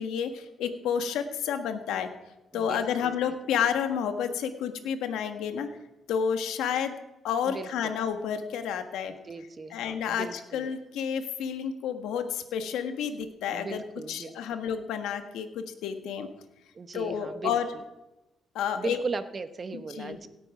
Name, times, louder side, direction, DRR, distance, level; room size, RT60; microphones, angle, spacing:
voice 1, 0.0-2.1 2.5-5.7 6.1-7.0 7.2-9.1 9.7-13.8 14.1-16.3 16.9-17.6 18.5-19.0 19.7-20.2, left 8 dB, 85° left, 7 dB, 1.4 m, -30 dB
voice 2, 2.5-3.1 7.4-8.0 9.2-10.7 13.5-14.3 16.7-17.6 18.8-20.3, right 4 dB, 35° right, 10 dB, 1.1 m, -37 dB
17.0 x 9.8 x 4.9 m, 0.98 s
cardioid pair, 90°, 0 cm